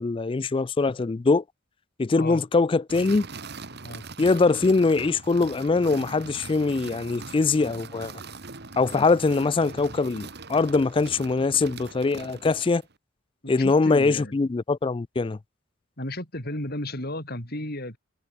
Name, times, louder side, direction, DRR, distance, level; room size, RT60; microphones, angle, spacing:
voice 1, 0.0-1.4 2.0-3.3 4.2-8.1 8.8-12.8 13.5-15.4, left 3 dB, 25° left, 0.4 m, -22 dB
sound 1, 2.9-12.9, right 3 dB, 55° right, 2.6 m, -41 dB
voice 2, 13.4-14.4 16.0-18.0, left 1 dB, 50° left, 7.9 m, -34 dB
head